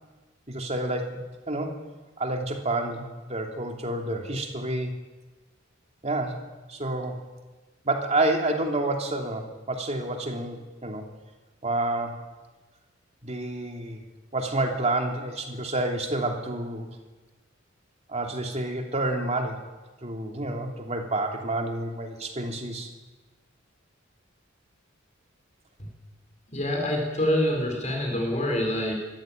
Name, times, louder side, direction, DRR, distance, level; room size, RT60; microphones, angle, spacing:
voice 1, 0.5-1.2 1.5-1.8 2.2-4.9 6.0-6.4 6.7-7.1 7.8-11.0 11.6-12.2 13.2-14.1 14.3-16.9 18.1-19.7 20.0-22.9, right 2 dB, 35° right, 2 dB, 2.9 m, -29 dB
voice 2, 26.5-29.0, left 1 dB, 35° left, 2 dB, 4.8 m, -26 dB
23.0 x 15.0 x 9.0 m, 1.2 s
head